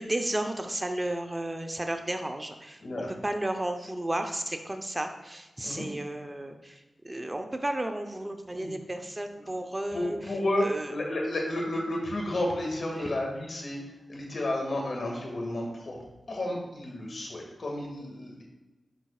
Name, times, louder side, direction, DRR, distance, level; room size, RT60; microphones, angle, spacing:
voice 1, 0.0-10.2 10.6-10.9 12.9-13.1, right 1 dB, 25° right, 5 dB, 0.8 m, -33 dB
voice 2, 2.8-3.1 5.6-5.9 8.5-8.7 9.9-13.8 14.1-16.0 16.3-18.4, left 1 dB, 65° left, 0 dB, 2.0 m, -31 dB
11.0 x 6.0 x 2.4 m, 1.1 s
cardioid pair, 45°, 0 cm